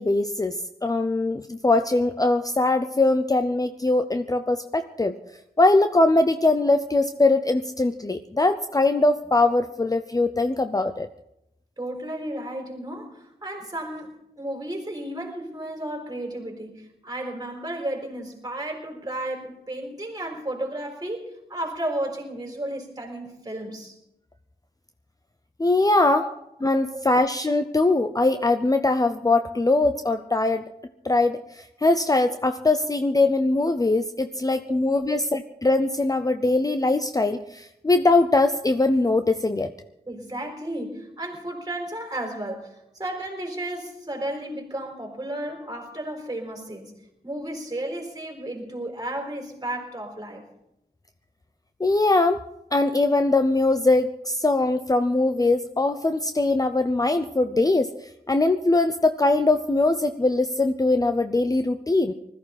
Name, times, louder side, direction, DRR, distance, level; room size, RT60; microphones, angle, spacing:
voice 1, 0.0-5.2 5.6-11.1 25.6-26.2 26.6-30.6 31.0-39.7 51.8-52.4 52.7-62.1, left 2 dB, 20° left, 8 dB, 0.6 m, -21 dB
voice 2, 11.8-23.9 25.9-26.3 26.9-27.0 34.7-34.8 35.1-35.2 40.1-46.9 47.2-50.4, right 1 dB, 25° right, 2 dB, 4.3 m, -33 dB
20.0 x 14.0 x 4.2 m, 0.82 s
wide cardioid pair, 110°, 17 cm